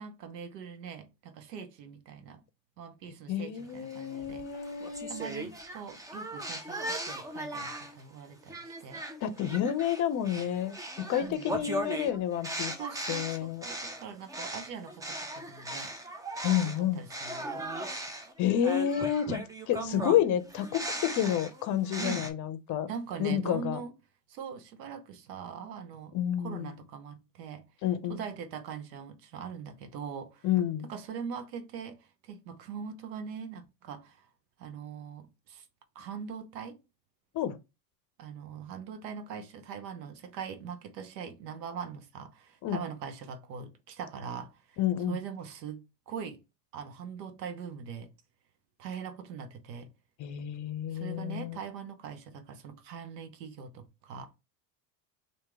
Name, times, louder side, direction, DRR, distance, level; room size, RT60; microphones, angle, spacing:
voice 1, 0.0-2.4 2.8-4.4 5.1-9.0 11.2-11.8 12.8-15.9 16.5-17.7 19.8-20.2 22.0-22.3 22.9-23.9 24.3-26.2 26.4-27.6 28.1-30.5 30.8-34.3 34.6-35.7 35.9-36.8 38.2-44.8 45.1-46.4 46.7-48.1 48.8-49.9 50.9-54.3, right 6 dB, 75° right, 0.9 m, -42 dB
voice 2, 3.3-5.3 9.2-10.8 11.1-12.7 13.1-13.6 16.4-17.0 18.4-22.9 23.2-23.8 26.1-26.7 27.8-28.2 30.4-30.9 37.3-37.6 42.6-42.8 44.8-45.2 50.2-51.6, left 10 dB, 35° left, 0.6 m, -30 dB
sound 1, 3.9-8.0 8.5-16.8 17.1-22.3, right 1 dB, 10° right, 0.4 m, -38 dB
2.9 x 2.7 x 3.6 m
hypercardioid pair, 95°, 49 cm